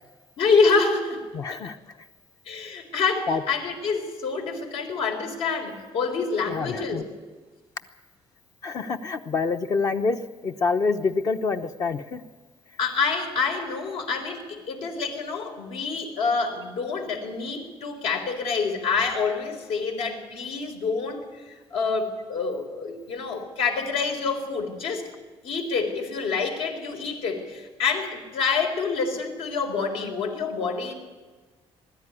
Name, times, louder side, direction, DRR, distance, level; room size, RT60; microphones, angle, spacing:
voice 1, 0.4-1.2 1.5-1.6 2.5-7.1 12.8-21.2 21.7-25.0 25.4-30.9, left 4 dB, 70° left, 4 dB, 4.1 m, -27 dB
voice 2, 1.3-1.8 3.3-3.4 6.4-7.0 8.6-12.2, left 4 dB, 35° left, 7 dB, 0.9 m, -26 dB
21.0 x 13.5 x 9.9 m, 1.3 s
cardioid pair, 175°, 11 cm